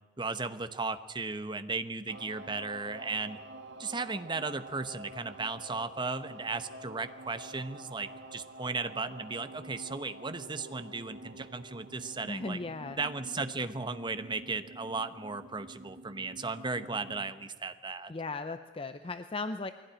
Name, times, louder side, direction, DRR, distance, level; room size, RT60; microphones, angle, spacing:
voice 1, 0.2-3.4 3.8-12.6 13.0-18.1, right 4 dB, 25° right, 11 dB, 1.0 m, -36 dB
sound 1, 2.1-17.3, right 1 dB, 65° right, 1.7 m, -48 dB
voice 2, 12.3-13.0 18.1-19.7, left 3 dB, 30° left, 10 dB, 0.6 m, -37 dB
21.5 x 16.5 x 10.0 m, 1.3 s
head